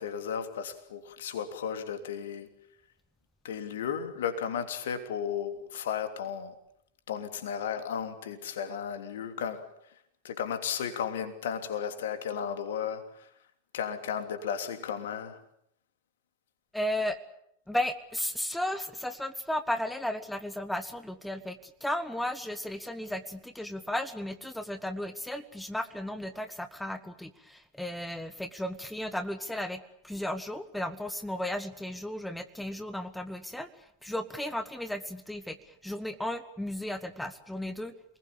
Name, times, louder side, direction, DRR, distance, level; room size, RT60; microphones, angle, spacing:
voice 1, 0.0-2.5 3.4-6.5 7.1-9.7 10.2-13.3 13.7-15.4, left 8 dB, 60° left, 3.1 m, -34 dB
voice 2, 16.7-17.2 17.7-37.9, left 1 dB, 5° left, 1.5 m, -34 dB
28.0 x 20.5 x 8.7 m
figure-of-eight pair, 90°, 0 cm